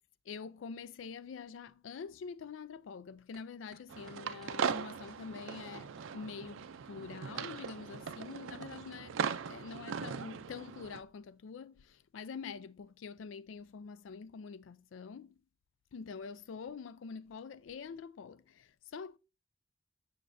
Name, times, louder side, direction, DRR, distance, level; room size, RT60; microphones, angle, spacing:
voice 1, 0.3-9.2 9.5-15.3 15.9-19.2, left 5 dB, 75° left, 0.4 m, -46 dB
sound 1, 3.3-3.4 3.7-10.4, right 1 dB, ahead, 1.7 m, -60 dB
sound 2, 3.9-11.0, right 6 dB, 80° right, 0.4 m, -39 dB
6.9 x 6.1 x 2.6 m
head